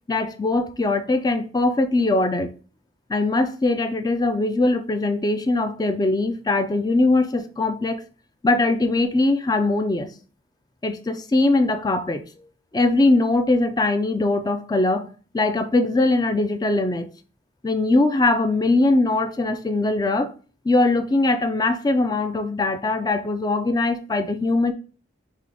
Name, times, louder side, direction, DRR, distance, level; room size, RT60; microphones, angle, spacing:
voice 1, 0.1-2.5 3.1-8.0 8.4-10.1 10.8-12.2 12.7-17.1 17.6-20.3 20.6-24.7, left 2 dB, 20° left, 0.3 m, -21 dB
3.7 x 3.2 x 3.5 m
head